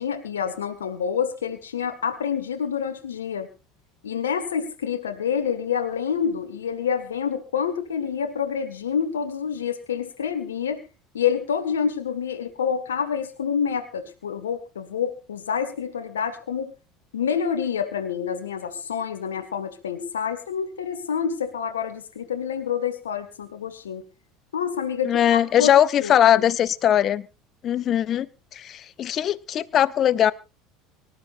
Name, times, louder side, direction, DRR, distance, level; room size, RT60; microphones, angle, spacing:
voice 1, 0.0-3.5 4.0-10.8 11.1-16.7 17.1-24.0 24.5-25.7 26.0-26.2, left 7 dB, 75° left, 5 dB, 1.6 m, -27 dB
voice 2, 25.0-27.3 27.6-30.3, left 10 dB, 40° left, 15 dB, 0.9 m, -20 dB
24.0 x 13.0 x 2.6 m, 0.30 s
figure-of-eight pair, 70°, 0 cm